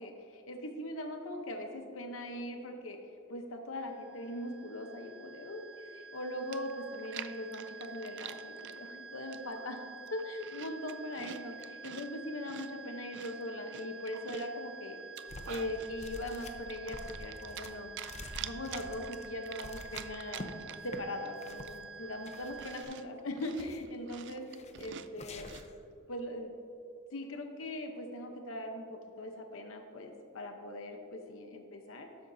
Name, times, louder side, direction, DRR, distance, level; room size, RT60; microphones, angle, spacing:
voice 1, 0.0-3.0 3.3-9.8 10.1-15.0 15.4-17.9 18.4-20.5 20.8-25.5 26.1-26.5 27.1-32.1, left 1 dB, 80° left, 4 dB, 0.9 m, -40 dB
sound 1, 3.8-22.8, right 5 dB, 5° right, 0.8 m, -49 dB
Chewing mastication, 6.1-6.2 6.5-8.8 9.3-9.7 10.0-12.1 12.4-14.6 15.0-15.9 16.3-17.7 18.0-21.0 21.2-21.3 21.6-25.7, right 10 dB, 60° right, 0.4 m, -47 dB
sound 2, 15.3-15.7 16.0-20.5 20.8-21.0 21.4-21.8 22.2-23.0 23.4-24.0 24.5-24.9 25.2-25.8, left 2 dB, 35° left, 0.7 m, -47 dB
12.0 x 8.9 x 2.7 m, 2.7 s
head